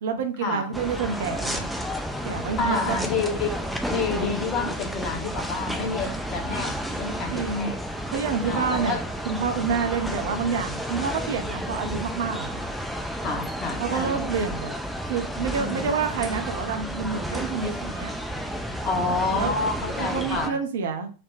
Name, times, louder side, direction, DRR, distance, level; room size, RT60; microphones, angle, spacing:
voice 1, 0.0-1.7 2.2-3.0 7.3-7.8 8.1-9.0 9.2-12.6 13.8-14.7 15.1-18.1 19.3-19.5 20.0-21.1, right 6 dB, 60° right, 7 dB, 0.6 m, -28 dB
sound 1, 0.7-20.5, equal, ahead, 0.4 m, -31 dB
voice 2, 2.6-3.6 3.8-7.7 8.4-9.0 13.2-14.3 15.6-15.9 18.8-20.6, left 4 dB, 35° left, 3 dB, 1.0 m, -29 dB
4.0 x 2.2 x 3.2 m, 0.36 s
figure-of-eight pair, 90°, 0 cm